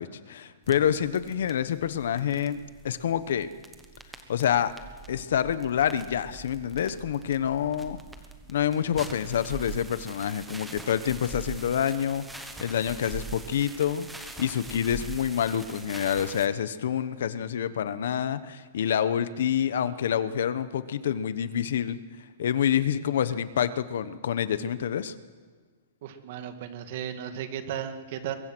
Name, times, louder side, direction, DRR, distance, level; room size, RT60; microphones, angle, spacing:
voice 1, 0.0-3.5 4.3-4.7 5.1-8.0 8.5-22.0 22.4-25.2, left 9 dB, 60° left, 14 dB, 1.1 m, -27 dB
sound 1, 0.6-16.5, right 3 dB, 5° right, 1.2 m, -43 dB
voice 2, 26.0-28.4, right 9 dB, 40° right, 8 dB, 2.0 m, -35 dB
24.0 x 22.5 x 6.3 m, 1.5 s
hypercardioid pair, 175°, 0 cm